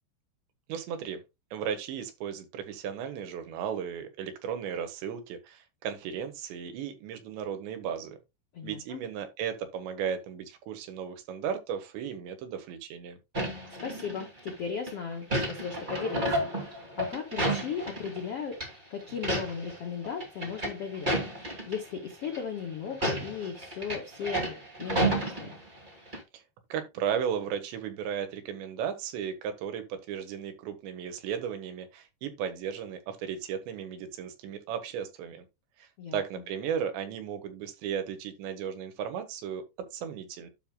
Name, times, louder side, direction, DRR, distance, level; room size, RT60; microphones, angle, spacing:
voice 1, 0.7-1.2 1.5-8.2 8.6-13.2 26.3-26.4 26.7-35.5 35.8-39.6 39.9-40.5, right 8 dB, 80° right, 3.6 m, -35 dB
voice 2, 8.5-9.0 13.8-25.6 36.0-36.4, left 6 dB, 85° left, 1.3 m, -37 dB
sound 1, 13.3-14.5 14.9-18.3 18.5-18.7 19.1-19.8 20.0-21.8 22.2-22.4 22.9-25.9 26.1-26.2, right 1 dB, 20° right, 1.4 m, -31 dB
12.0 x 5.6 x 2.2 m
omnidirectional pair, 5.1 m